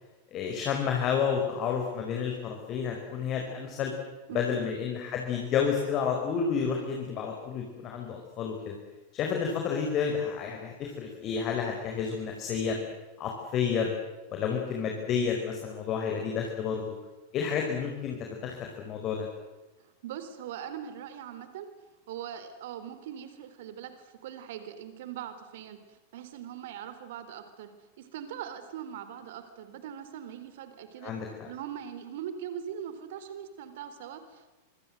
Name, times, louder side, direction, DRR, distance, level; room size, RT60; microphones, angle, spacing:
voice 1, 0.3-3.9 4.3-8.7 9.1-12.8 13.2-13.9 14.3-17.0 17.3-19.3 31.0-31.5, left 6 dB, 35° left, 2 dB, 4.9 m, -30 dB
voice 2, 4.3-4.6 19.8-21.7 22.1-27.7 28.0-31.1 31.4-34.5, right 9 dB, 55° right, 11 dB, 3.9 m, -41 dB
26.5 x 26.0 x 7.9 m, 1.1 s
figure-of-eight pair, 90°, 0 cm